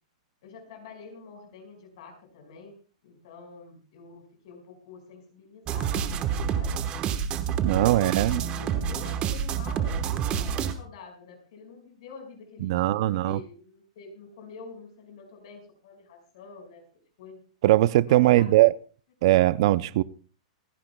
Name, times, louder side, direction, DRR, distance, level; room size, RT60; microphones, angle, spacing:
voice 1, 0.4-2.8 3.0-6.8 7.7-16.8 17.2-17.4 18.1-18.6, left 4 dB, 60° left, 5.1 m, -46 dB
sound 1, 5.7-10.7, right 8 dB, 30° right, 1.2 m, -28 dB
voice 2, 7.6-8.4 12.6-13.4 17.6-18.7 19.2-20.0, right 15 dB, 55° right, 0.5 m, -20 dB
27.0 x 10.0 x 2.2 m
supercardioid pair, 155°, 4 cm